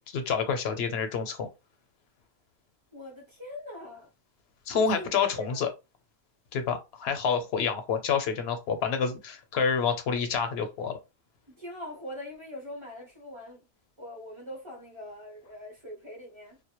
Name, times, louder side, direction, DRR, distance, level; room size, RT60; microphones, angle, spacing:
voice 1, 0.1-1.5 4.7-5.7 6.5-11.0, left 6 dB, 75° left, 0.8 m, -28 dB
voice 2, 2.9-4.1 4.7-5.1 5.3-5.6 11.6-13.7 14.0-16.6, left 1 dB, 30° right, 0.7 m, -42 dB
2.1 x 2.0 x 2.8 m
omnidirectional pair, 1.1 m